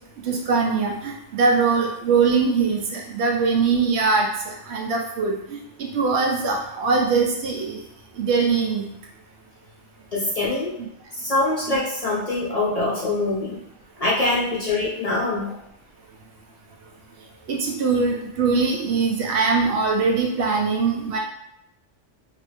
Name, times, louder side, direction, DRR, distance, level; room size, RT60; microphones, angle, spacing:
voice 1, 0.3-7.8 8.2-8.9 10.8-10.9 11.7-11.8 17.5-21.2, right 4 dB, 70° right, 1 dB, 0.8 m, -22 dB
voice 2, 10.1-10.7 11.2-13.6 14.0-15.6, left 2 dB, 40° left, -6 dB, 0.7 m, -24 dB
2.8 x 2.5 x 3.3 m, 0.79 s
omnidirectional pair, 1.2 m